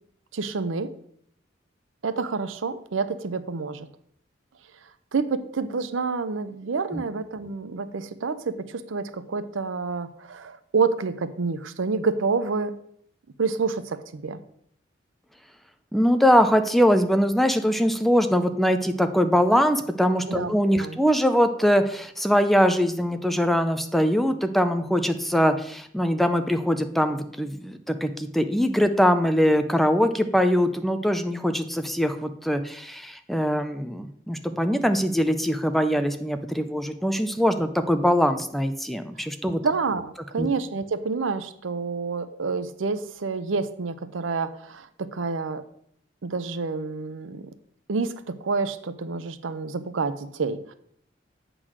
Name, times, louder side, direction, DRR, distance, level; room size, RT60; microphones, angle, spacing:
voice 1, 0.3-1.0 2.0-3.9 5.1-12.8 13.4-14.4 20.3-21.0 39.6-45.6 46.2-47.5 47.9-50.7, right 4 dB, 90° right, 12 dB, 0.6 m, -28 dB
voice 2, 15.9-39.6 40.4-40.5, equal, ahead, 8 dB, 0.4 m, -22 dB
8.0 x 3.9 x 6.1 m, 0.67 s
head